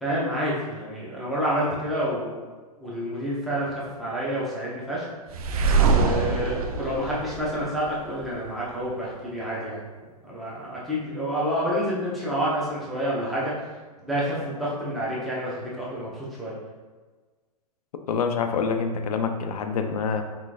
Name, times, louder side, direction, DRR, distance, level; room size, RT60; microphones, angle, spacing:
voice 1, 0.0-2.4 2.8-3.7 4.0-5.1 5.8-9.8 10.2-13.5 14.0-16.5, equal, ahead, -8 dB, 0.8 m, -28 dB
sound 1, 5.3-8.3, right 4 dB, 65° right, 0.5 m, -24 dB
voice 2, 18.1-20.2, left 5 dB, 70° left, 6 dB, 0.5 m, -26 dB
3.7 x 3.1 x 2.5 m, 1.4 s
hypercardioid pair, 130°, 20 cm